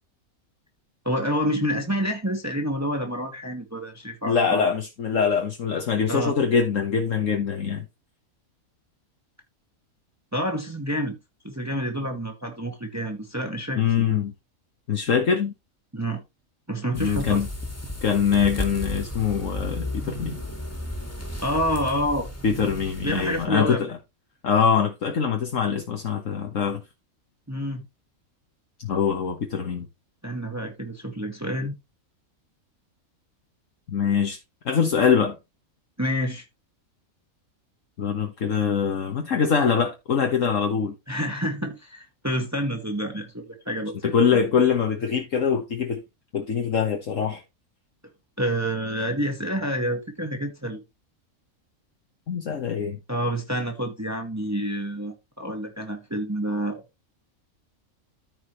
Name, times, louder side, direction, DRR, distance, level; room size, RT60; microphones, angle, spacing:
voice 1, 1.0-4.6 6.1-6.3 10.3-11.1 11.4-14.2 15.9-16.2 16.7-17.4 21.4-22.3 23.0-23.8 27.5-27.8 30.2-31.7 36.0-36.4 41.1-44.4 48.4-50.8 53.1-56.8, equal, 10° right, 1.6 m, -28 dB
voice 2, 4.3-7.8 13.7-14.3 14.9-15.5 16.9-17.5 18.0-20.4 22.4-23.9 24.4-26.8 28.8-29.9 33.9-34.4 34.6-35.4 38.0-40.9 44.0-46.0 46.3-47.4 52.3-53.0, left 6 dB, 60° left, 1.5 m, -23 dB
sound 1, 16.9-23.5, left 1 dB, 10° left, 1.9 m, -34 dB
14.0 x 4.8 x 3.2 m
omnidirectional pair, 1.5 m